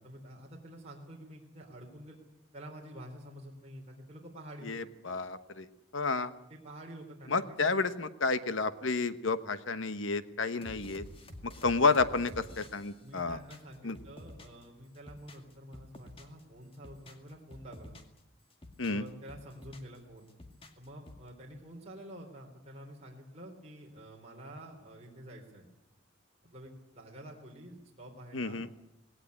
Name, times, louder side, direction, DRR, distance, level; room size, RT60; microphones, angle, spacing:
voice 1, 0.0-2.2 2.5-4.7 6.5-7.8 13.0-18.0 18.9-20.3 20.8-25.7 26.5-28.6, equal, 30° right, -1 dB, 3.7 m, -48 dB
voice 2, 4.6-5.7 5.9-6.3 7.3-11.0 11.6-13.4 13.8-14.0 18.8-19.0 28.3-28.7, left 4 dB, 75° left, 12 dB, 1.2 m, -30 dB
sound 1, 10.6-14.7 14.9-16.4 16.7-18.2 18.5-20.0 20.3-21.3, left 1 dB, 25° left, 2.1 m, -50 dB
19.5 x 17.5 x 9.7 m, 0.90 s
head